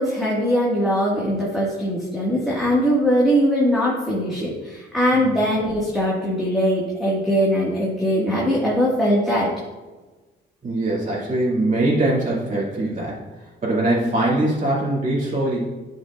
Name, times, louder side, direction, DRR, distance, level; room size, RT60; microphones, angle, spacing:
voice 1, 0.0-9.5, equal, ahead, -6 dB, 1.7 m, -21 dB
voice 2, 10.6-13.2 13.6-15.6, right 1 dB, 40° right, -6 dB, 2.4 m, -22 dB
10.5 x 5.5 x 2.4 m, 1.2 s
cardioid pair, 90°, 20 cm